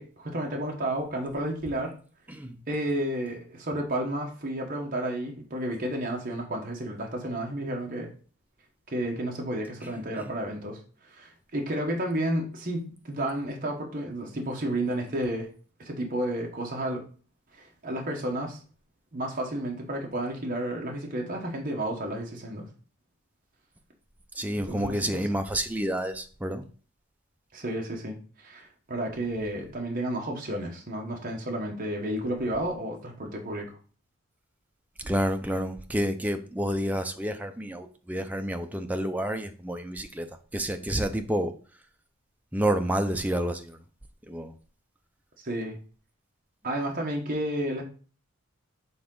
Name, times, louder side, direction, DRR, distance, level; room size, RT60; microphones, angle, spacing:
voice 1, 0.0-1.9 2.7-8.1 8.9-15.5 15.8-17.0 17.5-18.6 19.1-22.7 24.5-25.2 27.5-33.8 45.4-45.8 46.6-47.8, right 1 dB, 40° right, 1.1 m, -31 dB
voice 2, 2.3-2.6 9.8-10.3 24.3-26.6 35.0-41.5 42.5-43.8 44.3-44.5, right 1 dB, 5° right, 0.5 m, -29 dB
7.0 x 3.8 x 3.8 m
head